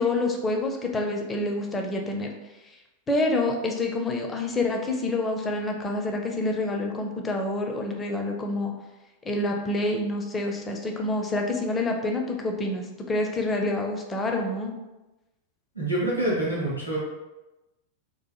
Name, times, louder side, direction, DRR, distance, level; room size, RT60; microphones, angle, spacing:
voice 1, 0.0-2.3 3.1-8.7 9.2-14.7, left 2 dB, 15° left, 2 dB, 0.4 m, -27 dB
voice 2, 15.7-17.0, right 1 dB, 85° left, -6 dB, 1.0 m, -26 dB
2.6 x 2.4 x 2.3 m, 1.0 s
figure-of-eight pair, 90°, 0 cm